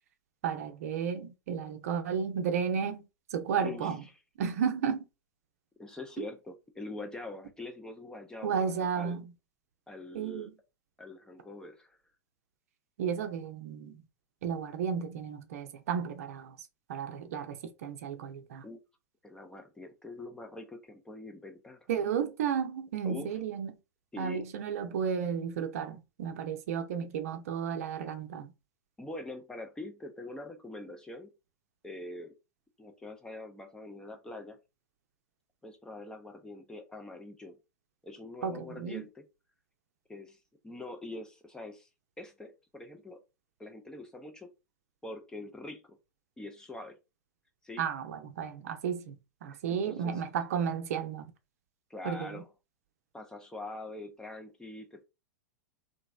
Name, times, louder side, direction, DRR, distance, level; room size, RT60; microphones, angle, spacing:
voice 1, 0.4-3.1 3.3-4.0 4.4-5.1 6.2-6.3 8.4-9.3 10.1-10.5 13.0-14.0 14.4-16.6 16.9-18.6 21.9-23.7 24.2-28.5 38.4-39.0 47.8-51.3 52.0-52.4, right 7 dB, 55° right, 0.5 m, -33 dB
voice 2, 3.6-3.9 5.8-9.2 9.9-10.5 11.0-12.0 18.6-18.8 19.2-21.8 23.0-23.3 24.1-24.4 29.0-31.3 31.8-32.3 32.8-34.6 35.6-37.6 38.0-39.2 40.1-40.4 40.6-41.9 42.2-43.2 43.6-44.5 45.0-46.0 46.4-47.0 47.6-47.8 49.5-50.2 51.9-52.5 53.1-55.0, left 2 dB, 5° left, 0.5 m, -44 dB
2.9 x 2.5 x 2.4 m
figure-of-eight pair, 95°, 10 cm